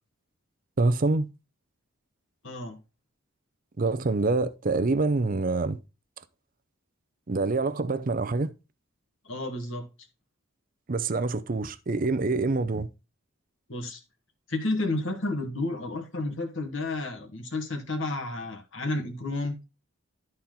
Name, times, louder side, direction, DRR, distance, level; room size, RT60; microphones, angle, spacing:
voice 1, 0.8-1.3 3.8-5.8 7.3-8.5 10.9-12.9, right 3 dB, 40° right, 0.5 m, -26 dB
voice 2, 2.4-2.8 9.2-9.8 13.7-14.0 14.5-19.5, left 2 dB, 60° left, 1.7 m, -31 dB
12.0 x 4.3 x 3.7 m
head